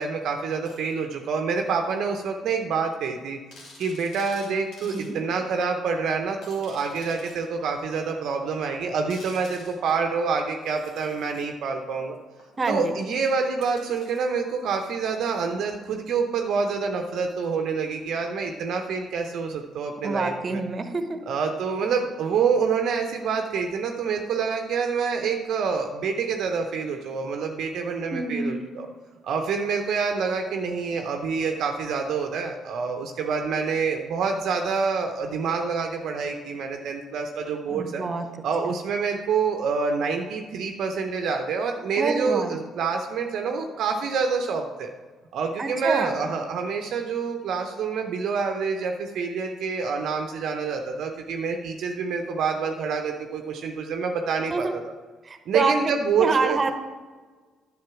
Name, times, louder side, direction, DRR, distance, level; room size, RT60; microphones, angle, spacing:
voice 1, 0.0-3.4 3.8-12.2 12.7-20.6 21.3-28.9 29.2-38.0 38.4-44.9 45.3-54.8 55.5-56.7, right 5 dB, 60° right, 4 dB, 0.7 m, -27 dB
sound 1, 0.6-1.0 1.9-2.0 2.5-2.6 2.8-2.9 3.5-5.1 5.6-5.7 6.4-7.4 8.0-8.1 9.1-10.0 10.6-11.4 12.4-15.5 17.3-17.4, left 2 dB, 65° left, 2.2 m, -50 dB
voice 2, 12.6-12.9 20.0-21.2 28.1-28.5 37.7-38.3 38.6-38.7 42.0-42.5 45.6-46.1 54.5-54.7 55.2-55.9 56.2-56.7, right 3 dB, 35° right, 8 dB, 1.0 m, -26 dB
10.5 x 6.4 x 4.8 m, 1.3 s
hypercardioid pair, 45°, 0 cm